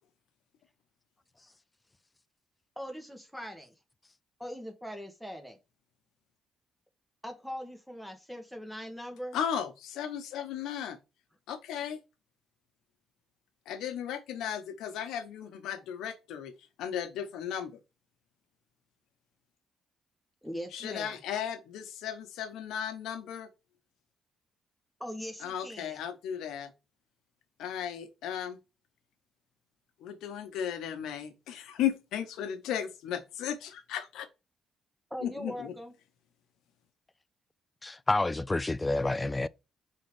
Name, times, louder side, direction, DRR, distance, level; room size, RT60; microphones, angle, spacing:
voice 1, 2.8-3.7 4.4-5.6 7.2-9.4 20.4-21.2 25.0-26.0 35.1-35.9, equal, ahead, 1.7 m, -41 dB
voice 2, 9.3-11.0 11.5-12.0 13.7-16.5 16.8-17.8 20.7-23.5 25.4-26.7 27.6-28.6 30.0-34.3 35.2-35.7, left 9 dB, 85° left, 1.0 m, -35 dB
voice 3, 37.8-39.5, left 2 dB, 20° left, 0.4 m, -29 dB
5.2 x 3.8 x 4.8 m
cardioid pair, 90°, 0 cm